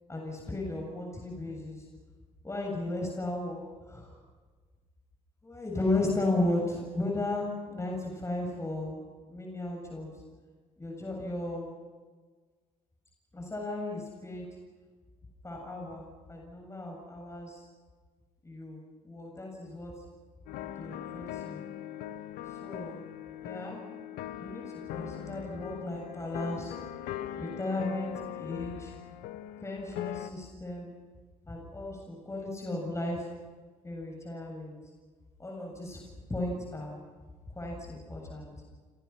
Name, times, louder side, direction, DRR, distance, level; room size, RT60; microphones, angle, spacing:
voice 1, 0.1-1.8 2.4-4.2 5.4-9.0 9.3-10.1 10.8-11.7 13.3-14.5 15.4-17.6 18.4-19.9 20.8-21.7 22.6-23.0 23.4-23.8 24.4-24.6 24.9-26.7 27.4-28.9 29.6-30.9 31.5-33.3 33.8-34.8 35.4-36.0 36.3-37.0 37.5-38.5, left 2 dB, 20° left, 0 dB, 7.9 m, -35 dB
sound 1, 20.5-30.3, left 11 dB, 80° left, 1.3 m, -40 dB
28.5 x 27.0 x 6.0 m, 1.4 s
supercardioid pair, 75°, 15 cm